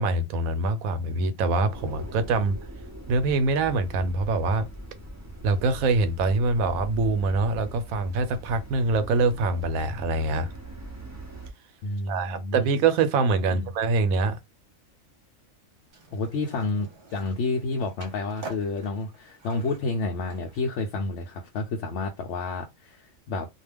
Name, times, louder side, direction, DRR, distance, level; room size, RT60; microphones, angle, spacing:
voice 1, 0.0-2.6 3.1-4.7 5.4-10.5 12.1-14.4, right 3 dB, 85° right, 1.0 m, -24 dB
sound 1, 1.7-11.5, right 1 dB, 25° right, 0.3 m, -41 dB
voice 2, 11.8-12.7 13.5-13.7 16.1-23.5, left 3 dB, 65° left, 0.8 m, -30 dB
Skateboard, 15.9-21.1, right 3 dB, 45° right, 0.9 m, -47 dB
2.4 x 2.2 x 3.3 m
omnidirectional pair, 1.4 m